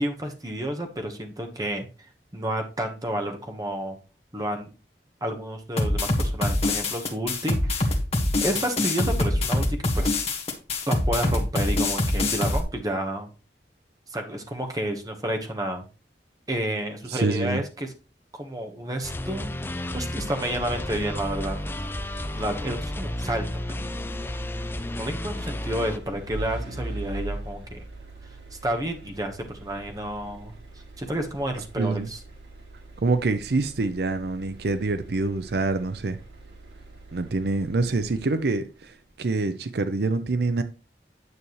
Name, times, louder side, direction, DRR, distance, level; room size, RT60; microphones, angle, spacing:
voice 1, 0.0-1.9 2.3-4.0 4.3-4.7 5.2-7.9 8.4-10.1 10.9-13.3 14.1-15.8 16.5-17.9 18.4-19.6 19.9-21.9 22.3-24.2 24.9-27.8 28.6-30.5 31.0-32.2, right 1 dB, 20° right, 1.2 m, -30 dB
sound 1, 5.8-12.6, left 2 dB, 35° left, 1.4 m, -24 dB
voice 2, 17.1-17.6 31.8-32.1 33.0-36.2 37.1-40.6, right 3 dB, 65° right, 0.5 m, -26 dB
sound 2, 19.0-26.0, left 1 dB, 15° left, 0.4 m, -32 dB
sound 3, 20.3-38.6, right 1 dB, 85° right, 3.0 m, -42 dB
9.5 x 7.0 x 3.1 m
head